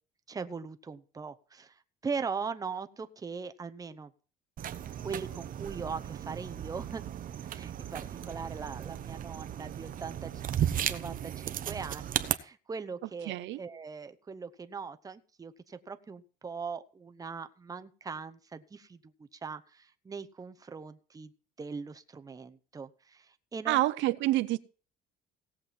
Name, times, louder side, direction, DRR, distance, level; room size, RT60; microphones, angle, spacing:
voice 1, 0.3-4.1 5.0-7.0 7.4-21.3 21.6-23.8, right 5 dB, 20° right, 10 dB, 0.8 m, -40 dB
sound 1, 4.6-12.3, right 10 dB, 45° right, 0.9 m, -35 dB
voice 2, 13.3-13.6 23.7-24.6, right 17 dB, 75° right, 14 dB, 0.7 m, -27 dB
17.5 x 7.5 x 4.3 m, 0.38 s
cardioid pair, 125°, 19 cm